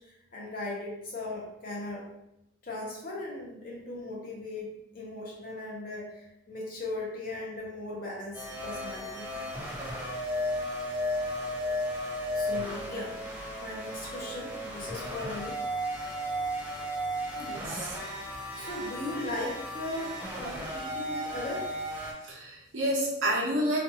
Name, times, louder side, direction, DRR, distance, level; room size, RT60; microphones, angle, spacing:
voice 1, 0.0-2.0 2.6-9.3 12.3-15.6 18.5-21.7, left 2 dB, 45° left, -3 dB, 0.7 m, -38 dB
sound 1, 8.3-22.1, equal, 10° right, 0.4 m, -34 dB
voice 2, 17.4-18.0 22.2-23.8, right 1 dB, 75° right, -3 dB, 0.7 m, -29 dB
2.5 x 2.3 x 2.7 m, 0.84 s
head